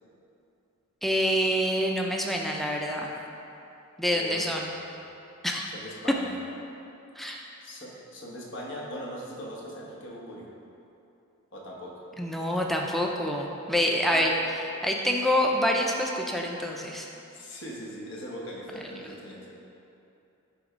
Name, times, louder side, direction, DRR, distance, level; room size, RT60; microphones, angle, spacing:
voice 1, 1.0-3.1 4.0-4.7 5.4-5.7 7.2-7.4 12.2-14.3 14.8-17.1, equal, ahead, 0 dB, 0.5 m, -26 dB
voice 2, 4.0-5.0 5.7-6.4 7.6-10.5 11.5-12.0 14.1-14.4 17.3-19.5, equal, 60° left, -3 dB, 1.3 m, -40 dB
10.0 x 3.4 x 5.0 m, 2.8 s
head